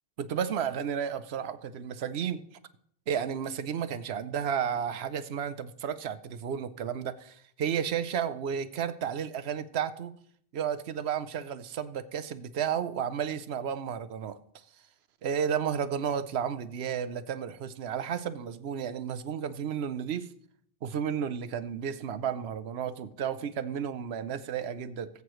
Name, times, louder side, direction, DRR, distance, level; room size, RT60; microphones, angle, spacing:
voice 1, 0.2-2.5 3.1-10.2 10.5-14.4 15.2-20.3 20.8-25.1, right 8 dB, 75° right, 13 dB, 0.9 m, -32 dB
19.0 x 8.2 x 3.1 m, 0.65 s
omnidirectional pair, 1.1 m